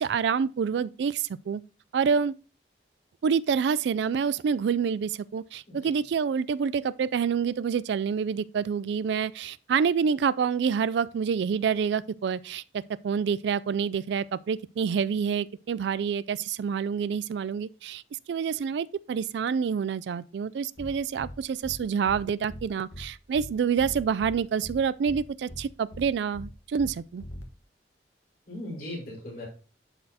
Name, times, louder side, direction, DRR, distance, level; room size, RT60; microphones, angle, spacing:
voice 1, 0.0-1.6 1.9-2.4 3.2-18.0 18.3-27.2, right 6 dB, 70° right, 0.3 m, -27 dB
sound 1, 20.8-20.9 21.2-21.3 21.6-21.8 22.1-22.2 22.5-22.6 22.9-23.0 23.3-23.5 23.8-24.3 24.6-24.8 25.1-25.2 25.5-25.6 25.9-26.0 26.3-26.5 26.8-26.9 27.2-27.4, equal, 75° left, 1.3 m, -40 dB
voice 2, 28.5-29.5, left 1 dB, 50° left, 4.3 m, -38 dB
11.5 x 4.2 x 2.8 m
head